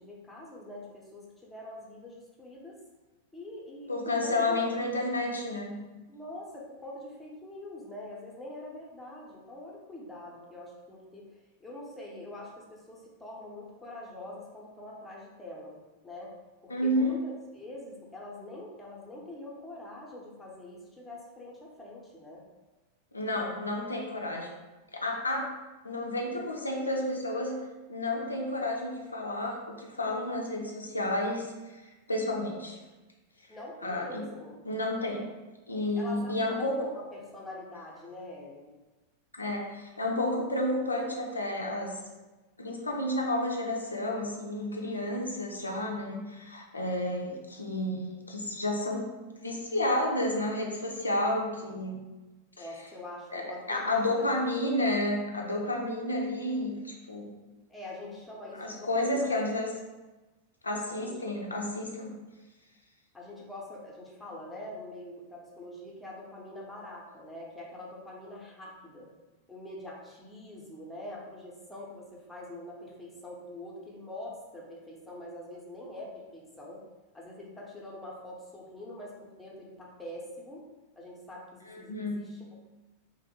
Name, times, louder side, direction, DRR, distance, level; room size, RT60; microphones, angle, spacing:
voice 1, 0.0-2.8 3.3-4.7 6.1-15.8 16.0-16.3 16.6-22.4 33.5-34.6 36.0-38.7 52.6-54.4 57.7-59.3 60.9-61.2 63.1-69.1 69.5-76.8 77.1-80.7 81.0-82.5, left 1 dB, 5° left, -4 dB, 0.7 m, -44 dB
voice 2, 3.9-5.8 16.7-17.2 23.1-24.5 24.9-25.5 25.8-27.6 27.9-32.8 33.8-34.3 34.7-35.3 35.7-36.8 39.3-42.0 42.6-49.1 49.4-52.0 53.3-57.3 58.5-59.7 60.6-62.1 81.7-82.4, left 1 dB, 80° left, 0 dB, 0.4 m, -31 dB
2.8 x 2.5 x 2.8 m, 1.2 s
figure-of-eight pair, 90°, 0 cm